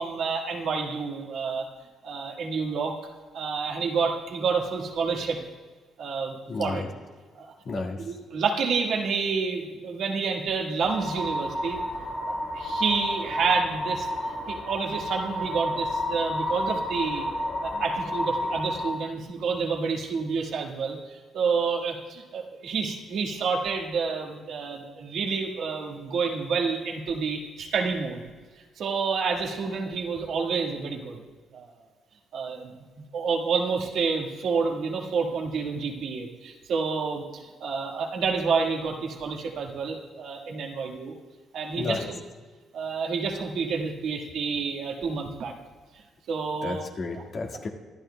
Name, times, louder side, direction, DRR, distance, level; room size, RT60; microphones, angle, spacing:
voice 1, 0.0-1.6 2.0-3.0 3.3-5.4 6.0-6.8 7.3-7.5 8.0-11.8 12.3-14.1 14.5-17.3 17.6-28.2 28.8-31.2 31.5-31.7 32.3-41.1 41.5-42.2 42.7-45.5 46.3-46.8 47.1-47.2, right 5 dB, 70° right, 1 dB, 1.5 m, -29 dB
voice 2, 6.5-6.9 7.6-8.0 41.8-42.1 46.6-47.7, left 3 dB, 50° left, 2 dB, 1.7 m, -31 dB
sound 1, 10.8-18.9, equal, 80° left, 4.4 m, -30 dB
24.5 x 11.5 x 2.2 m, 1.4 s
cardioid pair, 90°, 0 cm